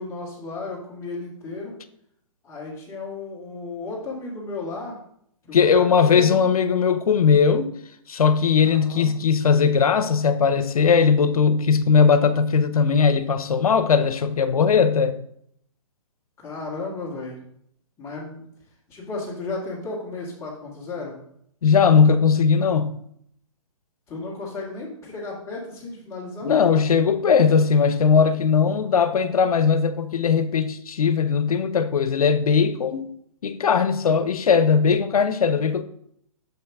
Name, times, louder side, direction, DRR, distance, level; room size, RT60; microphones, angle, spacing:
voice 1, 0.0-1.7 2.4-5.0 5.5-6.4 8.6-9.1 16.4-17.4 18.0-18.4 18.9-21.2 24.1-26.5, left 3 dB, 15° left, 1.9 m, -34 dB
voice 2, 5.5-7.7 8.1-15.2 21.6-22.9 26.4-33.1 33.4-35.8, left 6 dB, 90° left, 0.7 m, -19 dB
7.4 x 5.7 x 3.5 m
hypercardioid pair, 155°, 18 cm